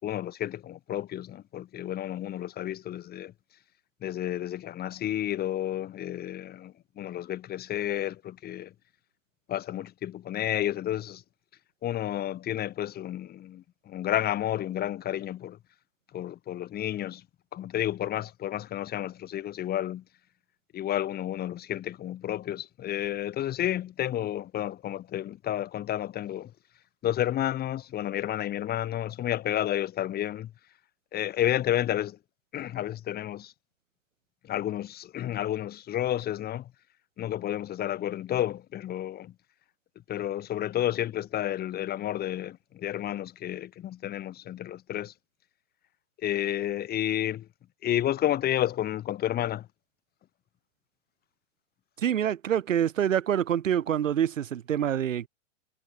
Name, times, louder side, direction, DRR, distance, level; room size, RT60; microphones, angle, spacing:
voice 1, 0.0-3.3 4.0-8.7 9.5-11.2 11.8-15.6 16.1-17.2 17.5-20.0 20.7-26.5 27.0-30.5 31.1-32.2 32.5-33.5 34.4-36.7 37.2-39.3 40.1-45.1 46.2-47.5 47.8-49.7, left 12 dB, 25° left, 4.7 m, -31 dB
voice 2, 52.0-55.3, right 9 dB, 85° right, 2.0 m, -26 dB
hypercardioid pair, 135°, 37 cm